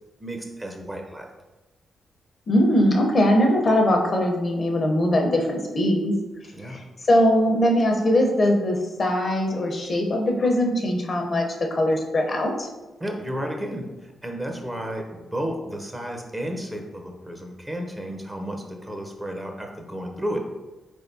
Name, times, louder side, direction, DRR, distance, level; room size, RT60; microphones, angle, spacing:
voice 1, 0.2-1.3 6.5-6.8 13.0-20.4, equal, 20° right, 2 dB, 0.8 m, -32 dB
voice 2, 2.5-6.1 6.7-6.8 7.1-11.5 11.7-12.7, left 1 dB, 50° left, 1 dB, 0.8 m, -21 dB
3.9 x 3.5 x 2.7 m, 1.1 s
supercardioid pair, 50°, 0 cm